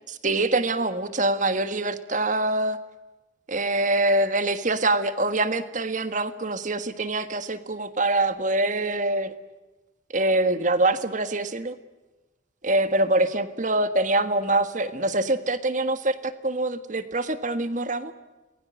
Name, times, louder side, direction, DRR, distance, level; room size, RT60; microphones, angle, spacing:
voice 1, 0.2-2.8 3.5-9.3 10.1-11.8 12.6-18.1, right 2 dB, 40° right, 11 dB, 1.6 m, -24 dB
29.0 x 21.0 x 7.8 m, 1.1 s
head